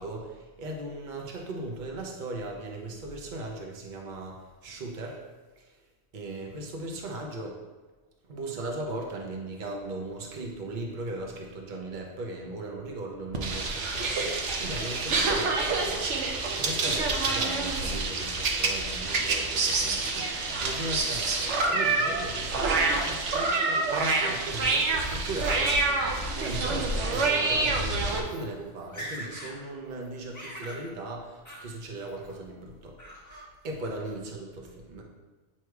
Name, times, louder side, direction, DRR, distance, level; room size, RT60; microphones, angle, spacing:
voice 1, 0.0-5.2 5.6-5.8 6.1-7.6 8.2-16.1 16.5-33.0 33.6-35.0, right 2 dB, 45° right, 0 dB, 1.0 m, -38 dB
sound 1, 13.3-28.2, right 3 dB, 75° right, 1.1 m, -27 dB
Laughter, 24.2-25.7 26.0-26.7 27.1-27.2 27.9-28.0 28.2-28.5 28.8-29.6 29.9-30.8 31.4-31.7 32.1-32.5 33.0-33.5, equal, 15° left, 1.3 m, -43 dB
8.1 x 3.0 x 4.6 m, 1.3 s
omnidirectional pair, 1.2 m